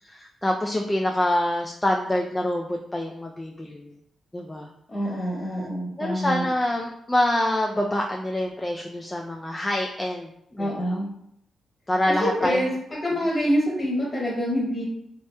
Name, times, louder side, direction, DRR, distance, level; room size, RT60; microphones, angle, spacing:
voice 1, 0.0-3.9 4.3-4.7 5.1-5.3 6.0-11.0 11.9-12.6, left 1 dB, 15° left, 0 dB, 0.3 m, -26 dB
voice 2, 4.9-6.4 10.6-11.1 12.1-14.8, equal, 35° left, -3 dB, 1.4 m, -26 dB
3.1 x 2.8 x 2.2 m, 0.75 s
supercardioid pair, 55°, 0 cm